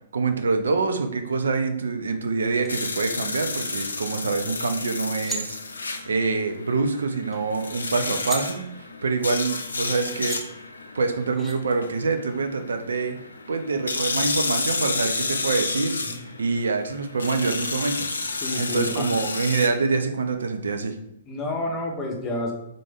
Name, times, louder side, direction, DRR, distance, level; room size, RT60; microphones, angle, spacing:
voice 1, 0.1-5.6 6.1-10.4 10.9-13.2 13.5-16.0 16.4-18.1 18.6-21.0, right 4 dB, 70° right, 7 dB, 0.5 m, -25 dB
sound 1, 2.6-2.7 3.5-3.9 4.8-4.9 5.1-5.4 7.3-7.4 7.7-8.4 9.8-9.9 10.2-10.4 11.4-11.6, equal, ahead, 0.7 m, -35 dB
sound 2, 2.7-19.7, left 3 dB, 75° left, 0.4 m, -31 dB
voice 2, 18.4-19.2 21.3-22.5, left 1 dB, 20° left, -1 dB, 1.1 m, -29 dB
3.7 x 3.3 x 3.7 m, 0.81 s
figure-of-eight pair, 115°, 0 cm